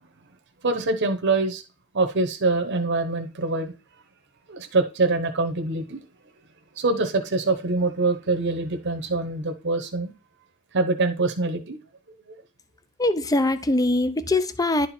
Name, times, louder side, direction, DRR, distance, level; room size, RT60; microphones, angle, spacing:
voice 1, 0.6-1.6 1.9-3.7 4.5-6.0 6.8-10.1 10.7-11.8, right 3 dB, 55° right, 0.9 m, -24 dB
voice 2, 13.0-14.9, left 2 dB, 15° left, 0.5 m, -22 dB
11.0 x 4.4 x 4.3 m
head